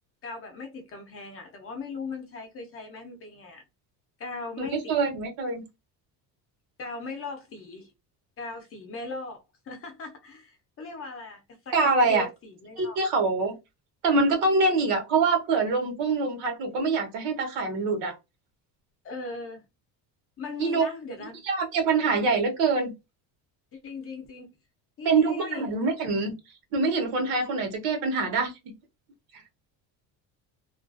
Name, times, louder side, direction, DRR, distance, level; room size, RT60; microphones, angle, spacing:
voice 1, 0.2-3.6 4.2-5.0 6.8-7.9 8.4-13.0 19.0-19.6 20.4-21.4 23.7-24.5 25.0-25.7, left 3 dB, 30° left, 0.6 m, -39 dB
voice 2, 4.6-5.6 11.7-12.3 12.8-13.6 14.0-18.2 20.6-20.9 21.4-22.9 25.0-26.3 26.7-28.8 29.3-29.4, right 3 dB, 75° right, 1.0 m, -25 dB
2.4 x 2.3 x 2.4 m
cardioid pair, 150°, 42 cm